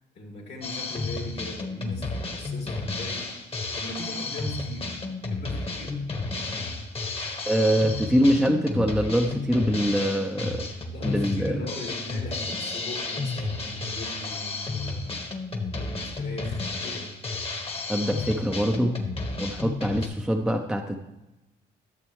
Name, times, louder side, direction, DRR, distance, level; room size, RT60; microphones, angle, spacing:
voice 1, 0.2-3.2 3.7-5.0 5.2-6.0 10.9-15.1 15.7-17.1, left 1 dB, 60° left, -1 dB, 2.1 m, -39 dB
Drum kit, 0.6-20.1, left 3 dB, 30° left, 1.3 m, -32 dB
voice 2, 7.5-10.7 11.0-11.6 17.9-19.0 19.4-21.0, equal, ahead, 2 dB, 0.7 m, -24 dB
12.0 x 6.6 x 3.1 m, 0.99 s
cardioid pair, 90°, 20 cm